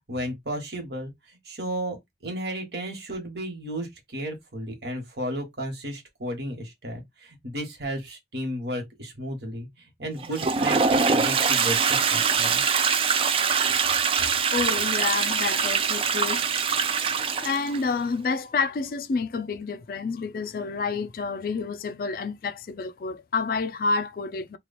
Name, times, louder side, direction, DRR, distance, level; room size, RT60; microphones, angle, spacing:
voice 1, 0.1-12.6, right 1 dB, 70° right, 1.4 m, -34 dB
Toilet flush, 10.2-17.8, right 5 dB, 30° right, 0.3 m, -23 dB
voice 2, 14.5-16.8 17.4-24.6, left 4 dB, 50° left, 0.3 m, -29 dB
3.0 x 2.3 x 4.0 m
head